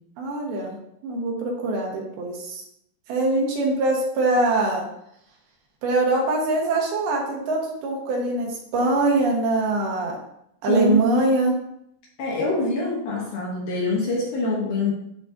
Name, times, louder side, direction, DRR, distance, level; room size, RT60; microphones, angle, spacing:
voice 1, 0.2-0.8 1.0-2.6 3.1-4.8 5.8-10.1 10.6-11.5, right 2 dB, 75° right, -1 dB, 3.1 m, -23 dB
voice 2, 10.7-11.2 12.2-14.9, left 2 dB, 65° left, -3 dB, 2.1 m, -24 dB
11.5 x 4.0 x 2.7 m, 0.76 s
omnidirectional pair, 4.6 m